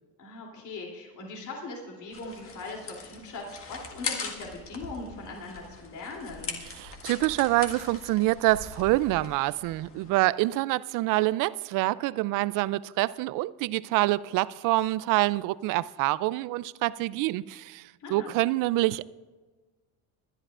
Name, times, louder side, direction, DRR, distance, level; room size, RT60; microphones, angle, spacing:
voice 1, 0.2-6.6 18.0-18.3, left 3 dB, 55° left, 3.1 m, -40 dB
sound 1, 2.1-10.1, left 4 dB, 35° left, 1.7 m, -40 dB
voice 2, 6.7-19.0, right 18 dB, 60° right, 0.5 m, -26 dB
21.5 x 11.0 x 2.5 m
supercardioid pair, 105°, 36 cm